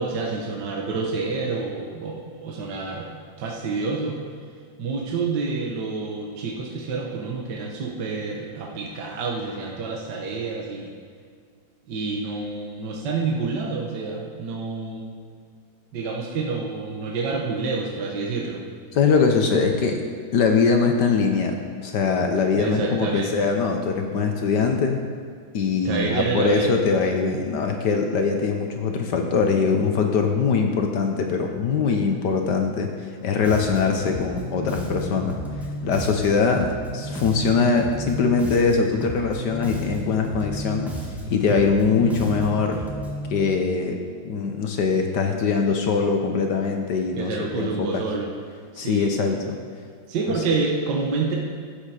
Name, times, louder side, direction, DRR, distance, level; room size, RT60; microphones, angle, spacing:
voice 1, 0.0-3.1 3.4-4.2 4.8-10.9 11.9-15.1 15.9-18.6 22.6-23.3 25.9-26.8 47.2-48.3 48.7-49.2 50.1-51.4, right 4 dB, 65° right, -1 dB, 1.8 m, -28 dB
voice 2, 18.9-20.0 20.3-21.6 21.8-25.0 25.5-32.9 33.2-35.4 35.8-40.9 41.3-42.8 43.3-44.0 44.2-48.0 48.8-49.6, left 5 dB, 65° left, 4 dB, 1.4 m, -22 dB
Bass guitar, 33.4-43.3, equal, ahead, 1.3 m, -33 dB
12.0 x 8.3 x 5.0 m, 2.1 s
omnidirectional pair, 2.1 m